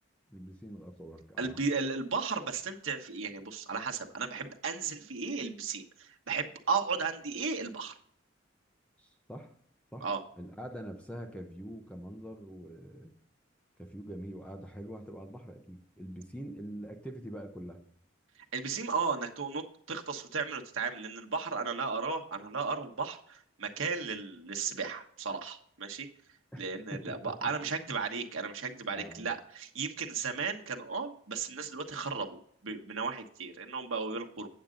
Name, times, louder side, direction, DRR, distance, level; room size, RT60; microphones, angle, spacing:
voice 1, 0.3-1.6 9.0-9.5 9.9-10.1 10.4-13.1 13.8-17.8 26.5-27.5 28.9-29.3, equal, 5° left, 4 dB, 0.8 m, -44 dB
voice 2, 1.4-7.9 10.0-10.2 18.5-26.1 26.6-34.5, right 5 dB, 90° right, 3 dB, 1.2 m, -35 dB
8.8 x 7.5 x 3.8 m, 0.63 s
head